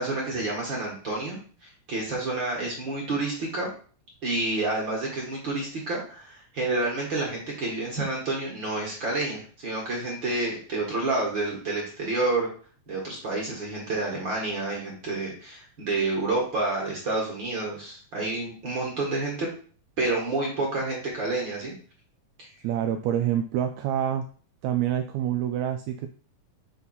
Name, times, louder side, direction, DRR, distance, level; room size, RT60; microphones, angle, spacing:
voice 1, 0.0-3.7 4.2-12.5 12.9-19.5 20.0-21.7 22.4-22.5, right 2 dB, 45° right, -2 dB, 1.9 m, -29 dB
voice 2, 22.6-24.2 24.6-26.1, right 10 dB, 80° right, 6 dB, 1.7 m, -26 dB
5.4 x 4.0 x 5.6 m, 0.43 s
omnidirectional pair, 3.7 m